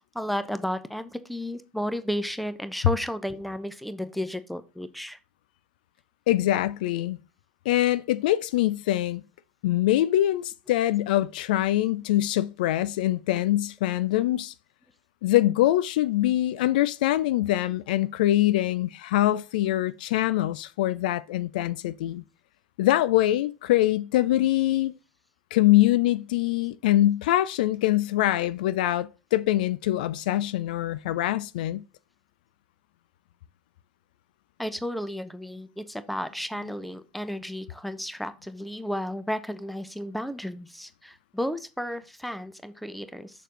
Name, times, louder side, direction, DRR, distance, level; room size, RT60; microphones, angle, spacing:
voice 1, 0.0-5.2 34.6-43.3, equal, ahead, 0.8 m, -33 dB
voice 2, 6.3-7.2 7.7-9.2 9.6-14.5 15.2-22.2 22.8-24.9 25.5-31.8, left 14 dB, 65° left, 0.4 m, -24 dB
6.5 x 6.5 x 3.8 m
figure-of-eight pair, 80°, 5 cm